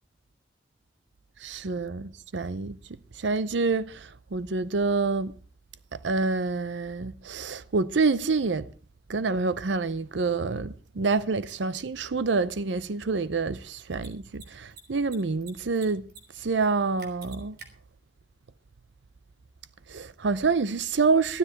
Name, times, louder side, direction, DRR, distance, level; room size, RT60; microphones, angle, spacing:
voice 1, 1.4-2.8 3.2-5.3 6.0-8.7 9.1-16.0 16.4-17.6 19.9-21.4, right 4 dB, 80° right, 0.6 m, -27 dB
Mechanisms, 11.5-11.6 13.9-14.1 14.3-14.4 14.7-15.5 15.7-16.2 16.5-16.6 17.0-17.7, right 4 dB, 60° right, 3.4 m, -46 dB
15.0 x 13.0 x 4.6 m
head